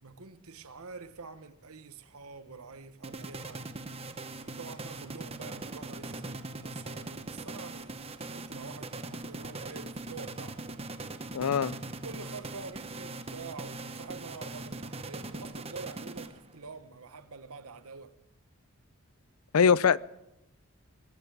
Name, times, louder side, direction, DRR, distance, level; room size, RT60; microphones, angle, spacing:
voice 1, 0.0-3.7 4.4-10.6 11.9-18.2, right 4 dB, 80° right, 1.2 m, -46 dB
sound 1, 3.0-16.7, right 2 dB, 25° right, 1.0 m, -41 dB
voice 2, 11.3-11.8 19.5-20.0, left 6 dB, 80° left, 0.5 m, -22 dB
22.0 x 15.5 x 3.6 m
head